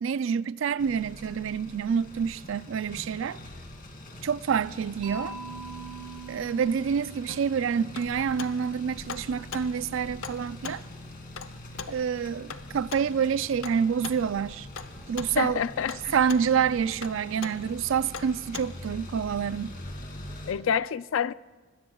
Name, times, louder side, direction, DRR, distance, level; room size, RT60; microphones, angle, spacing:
voice 1, 0.0-3.4 4.2-5.4 6.3-10.8 11.9-14.7 15.1-15.6 16.1-19.8, right 7 dB, 65° right, 0.4 m, -27 dB
sound 1, 0.8-20.5, left 1 dB, 45° left, 2.3 m, -44 dB
Mallet percussion, 5.0-9.0, right 4 dB, 40° right, 4.3 m, -43 dB
sound 2, 7.3-18.9, left 5 dB, 85° left, 0.7 m, -43 dB
voice 2, 15.4-16.1 20.5-21.3, left 8 dB, 70° left, 0.3 m, -27 dB
25.5 x 20.0 x 2.3 m
head